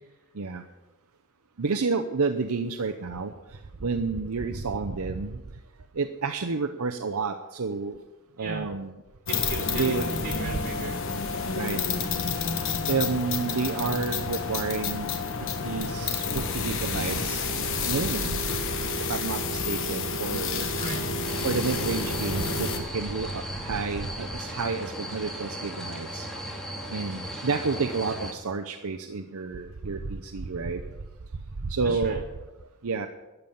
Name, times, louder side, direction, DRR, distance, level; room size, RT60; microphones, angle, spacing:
voice 1, 1.6-3.3 3.8-5.4 6.0-8.0 8.4-9.0 9.7-10.0 11.6-11.8 12.9-15.1 15.6-17.5 17.9-18.4 19.1-20.7 21.4-26.3 26.9-30.8 31.6-32.2 32.8-33.1, right 4 dB, 75° right, 5 dB, 0.7 m, -30 dB
voice 2, 8.4-8.7 9.3-11.0 20.7-21.1 31.8-32.2, right 2 dB, 40° right, -2 dB, 4.6 m, -36 dB
sound 1, 9.3-22.8, left 4 dB, 60° left, 1.3 m, -29 dB
sound 2, 21.2-28.3, equal, ahead, 1.9 m, -36 dB
12.5 x 6.9 x 9.2 m, 1.1 s
head